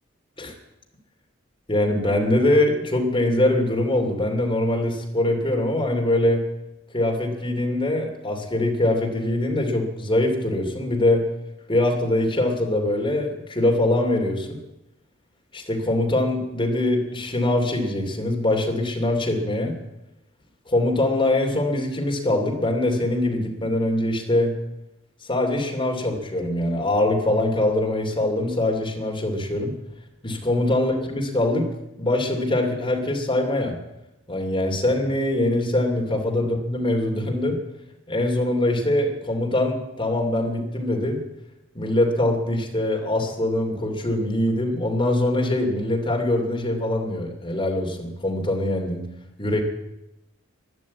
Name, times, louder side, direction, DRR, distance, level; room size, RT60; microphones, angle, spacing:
voice 1, 1.7-6.4 6.9-11.2 11.7-14.6 15.5-19.7 20.7-24.5 25.3-29.7 30.2-31.6 32.0-33.8 34.3-37.6 38.1-41.2 41.7-49.0 49.4-49.6, left 1 dB, 25° left, 1 dB, 2.8 m, -23 dB
12.5 x 11.5 x 8.5 m, 0.92 s
head